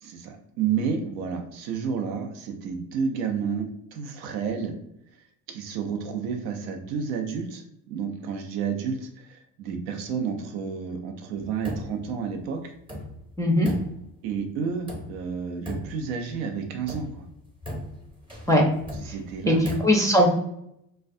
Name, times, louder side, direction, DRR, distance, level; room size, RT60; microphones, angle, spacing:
voice 1, 0.0-4.7 5.5-12.6 14.2-17.3 19.0-19.7, right 6 dB, 85° right, 4 dB, 0.6 m, -30 dB
sound 1, 11.4-12.1 12.4-12.5 12.9-14.4 14.9-15.4 15.6-16.4 16.8-19.8, equal, 10° right, 0.8 m, -38 dB
voice 2, 13.4-13.7 18.5-18.6 19.5-20.3, left 1 dB, 10° left, -1 dB, 0.4 m, -19 dB
2.3 x 2.2 x 2.5 m, 0.76 s
supercardioid pair, 70°, 42 cm